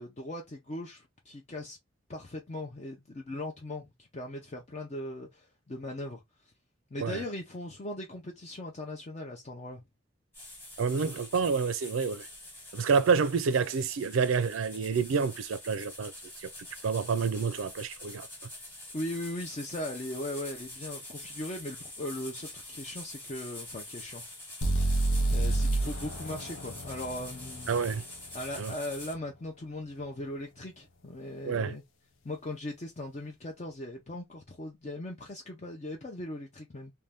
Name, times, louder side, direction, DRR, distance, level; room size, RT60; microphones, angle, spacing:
voice 1, 0.0-1.8 2.1-6.2 6.9-9.8 18.9-24.2 25.3-27.7 28.3-31.8 32.2-36.9, left 1 dB, 35° left, 0.5 m, -39 dB
sound 1, 10.3-29.1, left 1 dB, 10° left, 1.1 m, -45 dB
voice 2, 10.8-12.3 12.7-16.1 16.4-16.5 16.8-18.3 27.7-28.0 28.5-28.7 31.4-31.8, right 5 dB, 80° right, 0.4 m, -28 dB
sound 2, 24.6-28.5, right 2 dB, 75° left, 0.6 m, -29 dB
2.6 x 2.2 x 3.2 m
head